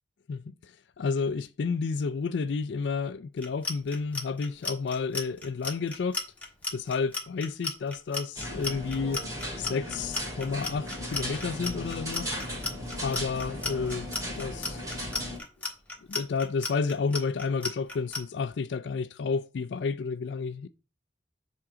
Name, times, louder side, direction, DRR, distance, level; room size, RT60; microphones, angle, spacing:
voice 1, 0.3-6.2 6.7-9.3 9.6-12.3 13.0-14.1 14.4-14.9 16.1-20.7, left 5 dB, 70° left, 0.4 m, -31 dB
Clock, 3.4-18.2, left 3 dB, 10° left, 1.5 m, -34 dB
sound 1, 8.4-15.4, equal, 20° right, 2.1 m, -36 dB
7.6 x 3.6 x 4.9 m
head